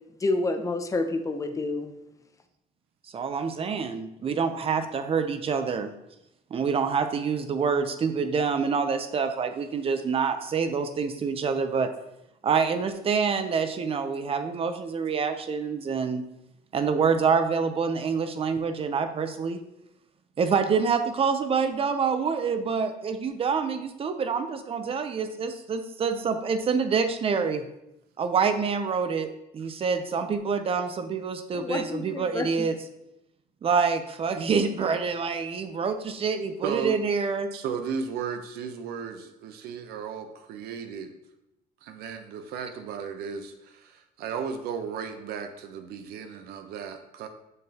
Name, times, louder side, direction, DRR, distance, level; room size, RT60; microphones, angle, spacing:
voice 1, 0.2-1.9 31.5-32.7, left 2 dB, 20° left, 7 dB, 0.7 m, -29 dB
voice 2, 3.1-5.9 6.5-11.9 12.4-16.2 16.7-19.6 20.4-27.6 28.2-29.3 29.5-32.8 33.6-37.5, right 5 dB, 35° right, 9 dB, 0.7 m, -26 dB
voice 3, 36.6-37.0 37.5-41.1 41.8-47.3, right 6 dB, 75° right, 7 dB, 0.8 m, -35 dB
6.8 x 6.5 x 2.9 m, 0.86 s
cardioid pair, 110°, 16 cm